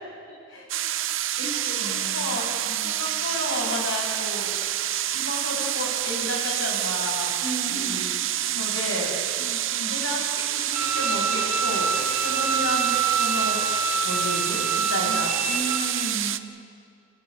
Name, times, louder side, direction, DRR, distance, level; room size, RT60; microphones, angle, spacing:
sound 1, 0.7-16.4, right 12 dB, 65° right, 0.8 m, -28 dB
voice 1, 1.4-3.0 7.4-7.9 8.5-8.6 9.4-9.9 15.0-16.3, right 1 dB, 90° left, -3 dB, 6.6 m, -36 dB
voice 2, 2.1-2.5 2.8-4.5 5.1-7.3 7.7-8.2 8.6-9.1 9.9-13.6 14.0-15.3, left 1 dB, 65° left, -1 dB, 7.3 m, -32 dB
Bowed string instrument, 10.7-15.8, right 4 dB, 35° right, 3.3 m, -26 dB
26.5 x 16.5 x 8.7 m, 2.3 s
head